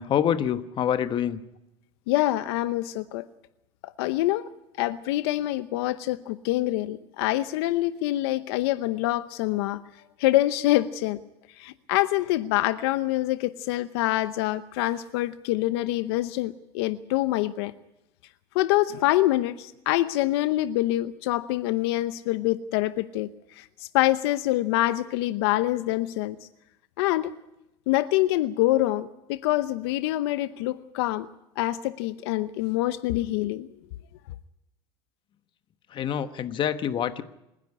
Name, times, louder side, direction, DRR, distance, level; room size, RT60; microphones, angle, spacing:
voice 1, 0.0-1.4 35.9-37.2, left 9 dB, 40° left, 11 dB, 1.2 m, -26 dB
voice 2, 2.1-3.2 4.0-4.5 4.8-9.8 10.2-11.2 11.6-17.7 18.5-23.3 23.9-26.4 27.0-27.3 27.9-31.3 31.6-33.7, left 16 dB, 80° left, 13 dB, 0.8 m, -25 dB
26.5 x 10.5 x 9.8 m, 0.89 s
supercardioid pair, 120°, 13 cm